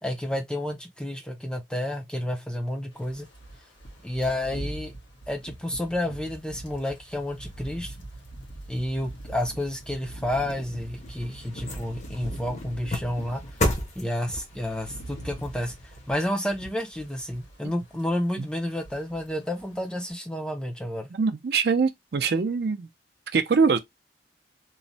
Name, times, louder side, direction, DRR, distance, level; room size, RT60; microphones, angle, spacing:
voice 1, 0.0-3.3 4.0-4.9 5.3-8.0 8.7-13.4 14.0-15.7 16.1-21.1, left 1 dB, 5° left, 0.4 m, -30 dB
sound 1, 3.0-13.9 14.3-17.7 17.9-18.2 18.5-19.3 19.6-19.8, right 1 dB, 90° left, 1.2 m, -41 dB
sound 2, 10.6-17.1 17.6-17.7, left 1 dB, 40° left, 0.7 m, -34 dB
voice 2, 21.1-22.9 23.3-23.8, right 5 dB, 60° right, 0.4 m, -23 dB
3.1 x 2.0 x 2.6 m
head